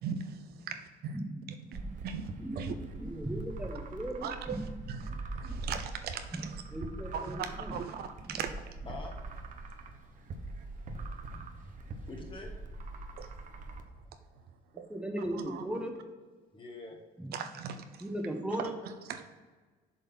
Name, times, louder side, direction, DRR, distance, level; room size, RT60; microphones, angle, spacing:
voice 1, 0.0-1.2 2.0-2.3 2.6-2.7 4.2-4.6 4.9-5.0 5.3-6.5 7.1-8.8 13.2-13.3 14.8-14.9 15.2-15.8 17.3-18.0 18.6-19.3, right 7 dB, 70° right, 8 dB, 0.7 m, -39 dB
voice 2, 1.1-1.9 2.4-4.6 4.9-5.1 6.3-7.8 8.2-8.4 10.9-11.0 11.3-11.4 14.7-16.0 17.2-17.4 18.0-18.7, right 1 dB, 5° right, 3 dB, 1.2 m, -38 dB
sound 1, 1.7-13.8, right 2 dB, 50° right, 0.9 m, -42 dB
voice 3, 8.9-9.3 11.7-12.6 16.5-17.0, left 2 dB, 30° left, 2 dB, 1.6 m, -45 dB
7.5 x 4.1 x 5.5 m, 1.4 s
cardioid pair, 110°, 17 cm